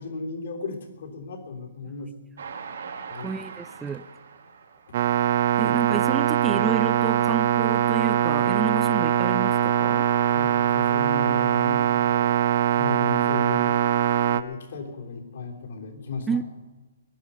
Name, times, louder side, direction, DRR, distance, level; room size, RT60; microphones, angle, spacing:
voice 1, 0.0-2.1 3.1-3.4 4.9-5.0 10.3-12.4 12.8-13.8 14.3-16.4, left 4 dB, 65° left, 2 dB, 3.4 m, -35 dB
Train, 2.4-5.8 6.3-6.4 6.7-6.8, right 6 dB, 80° right, 2.0 m, -41 dB
voice 2, 3.2-4.1 5.6-10.1 16.3-16.4, right 6 dB, 10° right, 13 dB, 0.4 m, -30 dB
sound 1, 4.9-14.4, right 10 dB, 55° right, 0.9 m, -22 dB
21.5 x 11.0 x 5.6 m, 1.2 s
hypercardioid pair, 145°, 0 cm